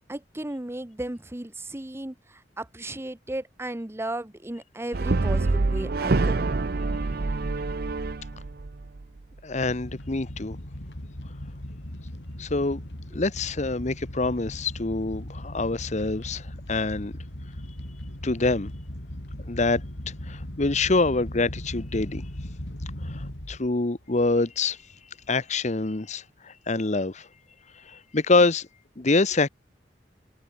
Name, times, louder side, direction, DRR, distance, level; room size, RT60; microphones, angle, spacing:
voice 1, 0.1-6.5 13.1-13.2, right 1 dB, 15° right, 0.9 m, -35 dB
Brass instrument, 4.9-9.2, right 3 dB, 60° right, 0.7 m, -26 dB
voice 2, 9.4-10.6 12.4-12.8 13.1-17.1 18.2-18.7 19.5-19.8 20.3-22.2 23.1-24.8 25.3-27.3 27.9-28.7 29.0-29.5, left 3 dB, 40° left, 1.0 m, -25 dB
sound 1, 9.6-23.8 24.1-24.5 24.9-25.0 25.2-25.4, left 1 dB, 75° left, 3.3 m, -38 dB
head